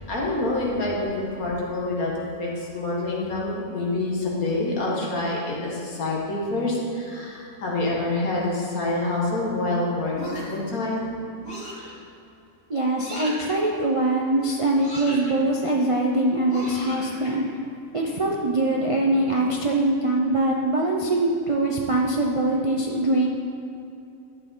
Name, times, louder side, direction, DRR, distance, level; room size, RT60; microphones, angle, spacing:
voice 1, 0.1-2.1 2.4-11.1 16.8-16.9, left 2 dB, 80° left, -4 dB, 2.2 m, -27 dB
sound 1, 10.1-10.7 11.4-11.9 13.0-13.5 14.8-15.3 16.5-17.3, equal, 50° left, 3.1 m, -36 dB
voice 2, 12.7-17.5 17.9-23.3, right 2 dB, 35° right, -1 dB, 0.5 m, -23 dB
11.5 x 8.2 x 3.8 m, 2.6 s
omnidirectional pair, 1.5 m